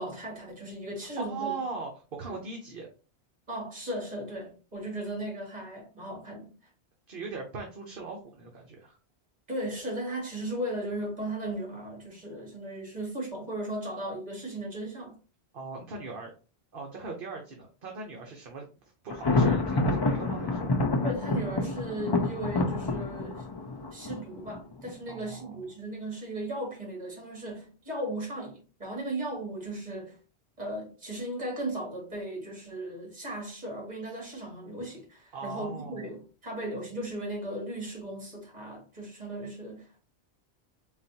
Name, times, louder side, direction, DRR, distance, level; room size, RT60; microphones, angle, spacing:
voice 1, 0.0-1.5 2.3-2.4 3.5-6.5 9.5-15.1 21.0-23.4 23.9-30.2 30.6-40.0, right 1 dB, 40° right, 2.2 m, -36 dB
voice 2, 1.2-2.9 7.1-9.0 15.5-16.3 16.7-18.6 19.0-20.8 25.1-25.6 35.3-36.1, right 4 dB, 55° right, 1.0 m, -39 dB
Thunder, 19.1-24.9, left 2 dB, 35° left, 0.4 m, -28 dB
4.0 x 4.0 x 2.8 m
omnidirectional pair, 1.2 m